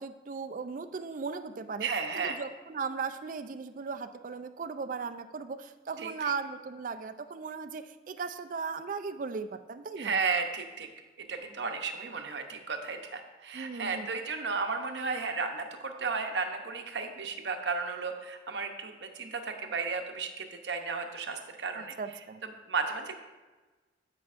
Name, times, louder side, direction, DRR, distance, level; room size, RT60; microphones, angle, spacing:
voice 1, 0.0-1.9 2.2-10.1 13.5-14.1 21.7-22.4, right 5 dB, 45° right, 9 dB, 0.4 m, -37 dB
voice 2, 1.8-2.4 6.0-6.1 10.0-10.9 11.2-22.0 22.7-23.1, right 4 dB, 75° right, 5 dB, 0.8 m, -34 dB
12.5 x 5.7 x 2.5 m, 1.3 s
head